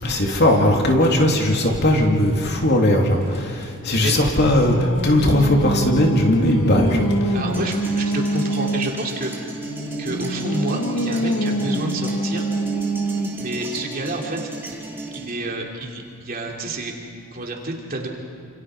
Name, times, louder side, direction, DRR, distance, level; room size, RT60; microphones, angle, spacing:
voice 1, 0.0-7.3, left 1 dB, 50° left, 1 dB, 2.8 m, -18 dB
Singing, 3.6-9.0 9.6-13.5, right 1 dB, 70° left, 1.7 m, -25 dB
voice 2, 7.3-9.3 10.0-12.5 13.4-14.4 15.0-16.9 17.3-18.1, right 2 dB, 40° right, 0 dB, 3.1 m, -29 dB
sound 1, 7.5-15.3, right 3 dB, 10° right, 2.7 m, -34 dB
28.5 x 27.5 x 4.9 m, 2.2 s
head